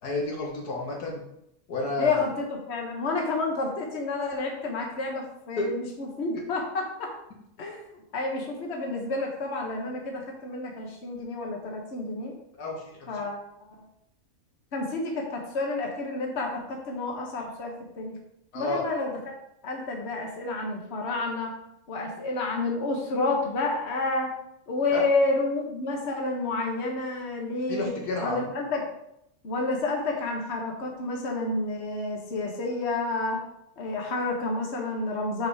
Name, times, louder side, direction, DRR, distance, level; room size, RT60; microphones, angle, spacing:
voice 1, 0.0-1.2 1.7-2.2 5.6-5.7 12.6-13.2 18.5-18.8 24.9-25.0 27.7-28.4, left 2 dB, 85° left, -1 dB, 2.1 m, -31 dB
voice 2, 2.0-7.1 7.6-12.3 13.1-13.4 14.7-18.2 18.5-19.3 19.6-21.5 21.9-24.3 24.7-27.9 28.2-28.8 29.4-33.4 33.8-35.5, left 3 dB, 45° left, 0 dB, 1.6 m, -30 dB
6.4 x 5.2 x 4.9 m, 0.78 s
omnidirectional pair, 1.6 m